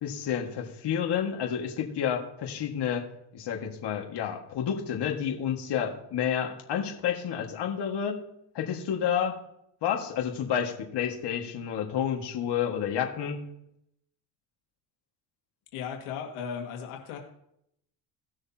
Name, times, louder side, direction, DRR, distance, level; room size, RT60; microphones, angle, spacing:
voice 1, 0.0-3.1 3.3-8.2 8.6-9.4 9.8-13.4, left 8 dB, 55° left, 1 dB, 1.9 m, -30 dB
voice 2, 15.7-17.2, left 7 dB, 80° left, 2 dB, 2.0 m, -36 dB
18.0 x 6.4 x 2.9 m, 0.75 s
supercardioid pair, 90°, 49 cm